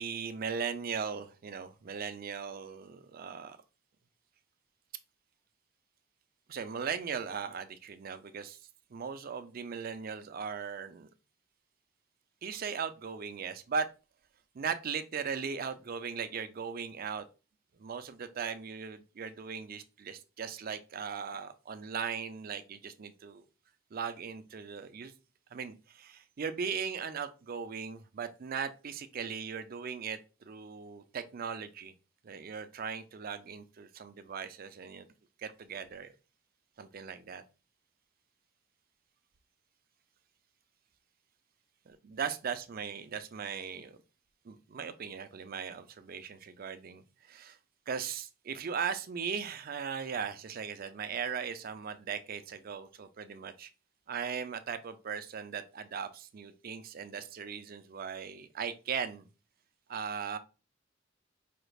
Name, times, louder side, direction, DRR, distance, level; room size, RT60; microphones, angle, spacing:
voice 1, 0.0-3.6 6.5-8.6 8.9-11.1 12.4-13.9 14.5-17.3 17.8-23.4 23.9-25.1 25.5-31.9 32.2-35.1 35.4-36.1 36.8-37.4 42.0-44.0 44.4-47.6 47.9-53.7 54.1-59.3 59.9-60.4, right 6 dB, 50° right, 0.4 m, -38 dB
4.9 x 3.3 x 2.3 m
head